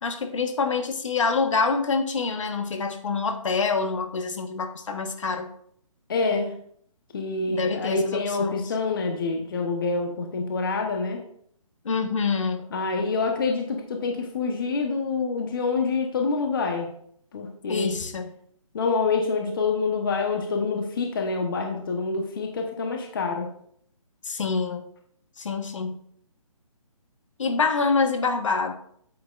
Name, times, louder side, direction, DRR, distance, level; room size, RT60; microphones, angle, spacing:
voice 1, 0.0-5.5 7.5-8.7 11.8-12.6 17.7-18.3 24.2-24.8 25.4-25.9 27.4-28.7, left 4 dB, 60° left, 7 dB, 1.2 m, -26 dB
voice 2, 6.1-6.6 7.1-11.2 12.7-16.9 17.3-18.0 18.7-23.5, left 4 dB, 40° left, 3 dB, 1.0 m, -26 dB
9.2 x 8.4 x 2.5 m, 0.66 s
hypercardioid pair, 170°, 18 cm